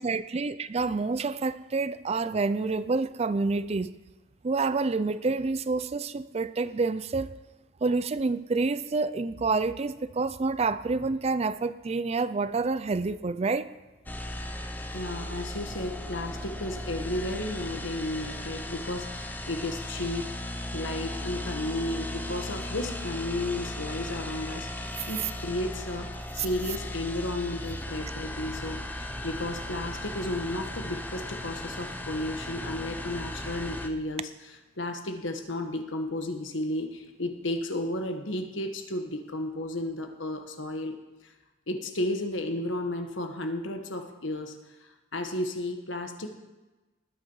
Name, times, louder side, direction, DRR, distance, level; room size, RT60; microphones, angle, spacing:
voice 1, 0.0-3.9 4.4-7.4 7.8-13.7 26.4-26.5, right 3 dB, 30° right, 14 dB, 0.4 m, -28 dB
sound 1, 14.1-33.9, left 1 dB, 10° left, 0.8 m, -37 dB
voice 2, 14.9-20.4 20.7-34.3 34.8-41.3 41.7-44.6 45.1-46.4, left 1 dB, 70° left, 5 dB, 1.4 m, -33 dB
19.5 x 7.4 x 5.6 m, 1.1 s
head